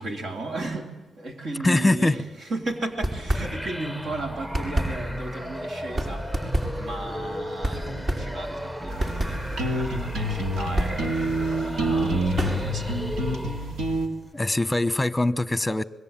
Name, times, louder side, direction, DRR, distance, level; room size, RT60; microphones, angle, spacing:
voice 1, 0.0-2.2 2.5-6.2 6.8-13.0, right 2 dB, 65° right, 3.5 m, -35 dB
voice 2, 1.6-2.2 14.3-15.8, left 2 dB, 15° left, 1.0 m, -22 dB
sound 1, 2.9-4.0 4.3-12.9, right 1 dB, 45° right, 5.6 m, -30 dB
sound 2, 3.3-13.9, equal, 15° right, 1.4 m, -35 dB
sound 3, 8.9-14.1, right 1 dB, 90° right, 3.1 m, -27 dB
25.5 x 22.0 x 9.0 m
cardioid pair, 85°, 0 cm